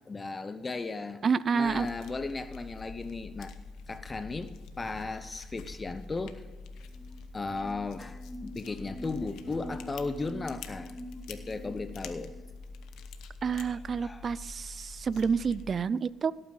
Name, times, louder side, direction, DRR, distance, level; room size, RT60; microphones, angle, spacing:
voice 1, 0.1-1.2 1.5-3.5 3.9-6.4 7.3-10.9 11.3-12.3 13.6-14.3, left 3 dB, 25° left, 11 dB, 0.8 m, -36 dB
voice 2, 1.2-1.9 13.4-16.3, right 6 dB, 45° right, 19 dB, 0.4 m, -29 dB
sound 1, 1.6-15.8, left 4 dB, 85° left, 1.0 m, -46 dB
sound 2, 6.8-12.5, equal, 15° right, 1.8 m, -46 dB
17.0 x 8.9 x 4.0 m, 1.3 s
cardioid pair, 85°, 0 cm